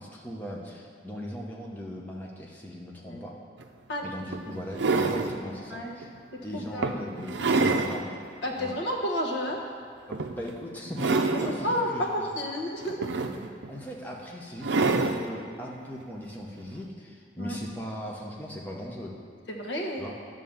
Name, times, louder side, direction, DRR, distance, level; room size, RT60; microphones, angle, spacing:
voice 1, 0.0-3.4 4.0-6.1 6.4-8.1 8.5-8.8 10.1-12.3 13.7-19.2 20.0-20.1, equal, 10° left, -3 dB, 0.9 m, -39 dB
sound 1, 3.6-3.7 4.3-5.4 6.0-6.2 6.8-8.0 8.5-8.6 10.1-10.5 10.9-11.6 12.8-13.7 14.6-15.3 16.6-16.7, right 3 dB, 80° right, 0.5 m, -26 dB
voice 2, 6.5-7.0 7.2-7.5 8.4-9.6 11.6-13.1 17.4-17.6 19.5-20.0, equal, 80° left, 0 dB, 1.2 m, -31 dB
10.5 x 3.8 x 7.1 m, 2.3 s
head